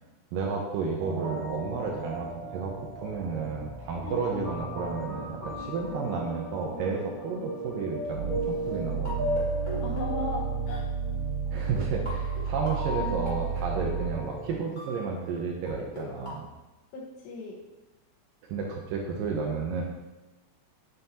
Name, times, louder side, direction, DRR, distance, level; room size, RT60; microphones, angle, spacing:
voice 1, 0.3-9.5 11.5-16.5 18.5-19.8, right 5 dB, 80° right, 0 dB, 2.0 m, -32 dB
sound 1, 1.0-14.6, equal, 55° right, 2.6 m, -37 dB
voice 2, 4.0-4.5 9.8-10.8 16.9-17.6, left 3 dB, 85° left, -2 dB, 3.4 m, -36 dB
sound 2, 8.1-14.3, right 6 dB, 55° left, 2.4 m, -32 dB
sound 3, 8.3-10.8 11.5-11.6 11.8-15.7 16.0-16.4, right 1 dB, 30° left, 0.8 m, -41 dB
9.1 x 5.6 x 2.8 m, 1.1 s
omnidirectional pair, 4.8 m